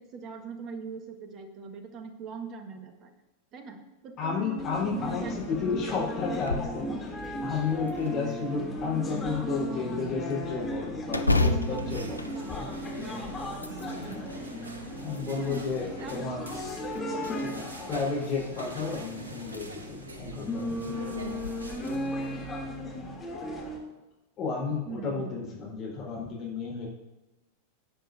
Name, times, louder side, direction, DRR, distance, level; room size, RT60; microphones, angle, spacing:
voice 1, 0.0-3.1 3.5-6.0 6.3-6.4 9.7-10.0 11.4-14.2 15.3-15.7 16.0-16.2 24.8-25.4, right 4 dB, 35° right, 5 dB, 1.6 m, -42 dB
voice 2, 4.2-12.2 12.5-12.8 14.0-14.4 15.0-16.5 17.4-21.0 24.4-26.9, left 5 dB, 35° left, -4 dB, 4.2 m, -32 dB
sound 1, 4.6-23.8, left 1 dB, 15° left, 2.9 m, -36 dB
sound 2, 6.3-6.8 7.2-7.3 7.9-8.7 11.1-13.1 13.5-14.2 14.9-15.7 16.6-17.3 18.7-18.8 19.4-19.6 20.1-20.2 21.2-21.5, left 2 dB, 85° left, 0.6 m, -30 dB
sound 3, 11.6-22.7, right 2 dB, 75° right, 1.3 m, -45 dB
17.5 x 9.2 x 2.7 m, 1.0 s
figure-of-eight pair, 90°, 0 cm